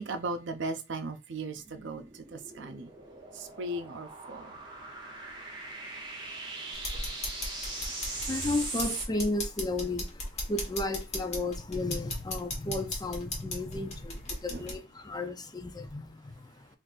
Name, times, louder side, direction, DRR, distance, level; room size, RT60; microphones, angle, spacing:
voice 1, 0.0-2.9 3.3-4.6 8.4-8.5 14.5-14.7, right 2 dB, 75° right, 0.5 m, -37 dB
sound 1, 1.5-9.1, right 2 dB, 25° right, 1.1 m, -40 dB
sound 2, 6.7-14.8, left 1 dB, 40° left, 1.3 m, -37 dB
voice 2, 7.7-16.7, left 2 dB, 20° left, 0.5 m, -34 dB
3.8 x 2.6 x 2.5 m
head